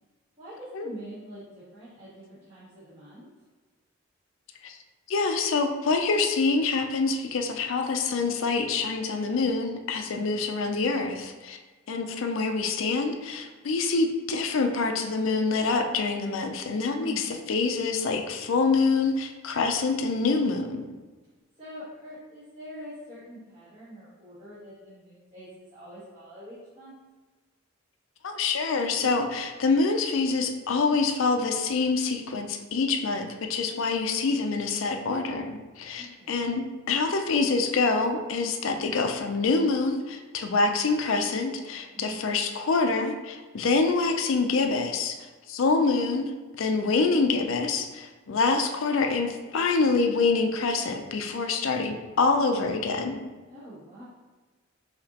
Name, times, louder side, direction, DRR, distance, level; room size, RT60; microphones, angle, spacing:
voice 1, 0.4-3.3 17.0-17.4 21.6-26.9 36.0-36.5 41.9-42.3 53.5-54.0, equal, 30° right, -13 dB, 1.2 m, -44 dB
voice 2, 5.1-11.6 11.9-20.8 28.2-45.2 45.5-46.3 46.6-53.2, left 4 dB, 70° left, 5 dB, 0.4 m, -26 dB
5.1 x 2.8 x 2.8 m, 1.3 s
head